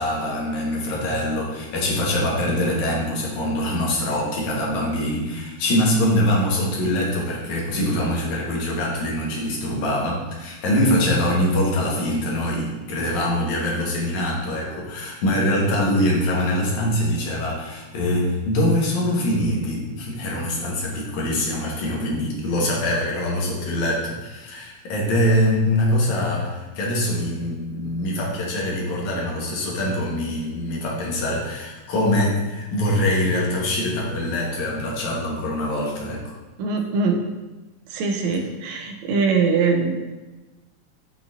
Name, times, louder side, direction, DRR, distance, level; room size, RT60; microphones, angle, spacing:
voice 1, 0.0-36.3, left 1 dB, 75° left, -3 dB, 2.6 m, -23 dB
voice 2, 36.6-37.2 37.9-40.0, right 4 dB, 80° right, 3 dB, 1.9 m, -22 dB
6.7 x 5.9 x 2.6 m, 1.2 s
omnidirectional pair, 3.4 m